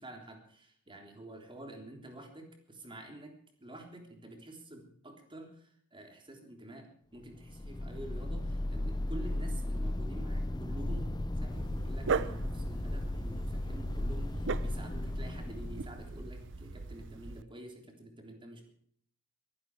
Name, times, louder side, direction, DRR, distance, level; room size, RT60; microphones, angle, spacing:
voice 1, 0.0-18.7, right 1 dB, 25° right, 3 dB, 3.4 m, -48 dB
sound 1, 7.3-16.7, left 1 dB, 20° left, 0.6 m, -36 dB
Dog, 11.5-17.4, right 5 dB, 55° right, 0.7 m, -39 dB
23.0 x 11.0 x 4.8 m, 0.62 s
head